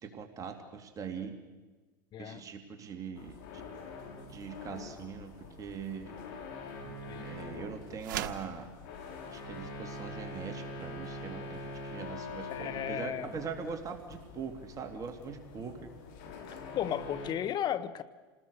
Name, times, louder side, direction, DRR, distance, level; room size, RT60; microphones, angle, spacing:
voice 1, 0.0-1.3 2.2-3.6 4.3-6.2 7.2-8.7 9.3-15.7, right 6 dB, 35° right, 5 dB, 2.8 m, -42 dB
voice 2, 2.1-2.4 6.8-7.2 12.5-13.3 16.7-18.0, left 10 dB, 45° left, 15 dB, 1.1 m, -35 dB
sound 1, 3.2-17.3, left 2 dB, 70° left, 4.2 m, -44 dB
sound 2, 8.0-8.5, right 12 dB, 80° right, 1.3 m, -36 dB
28.5 x 19.5 x 6.5 m, 1.3 s
supercardioid pair, 105°, 11 cm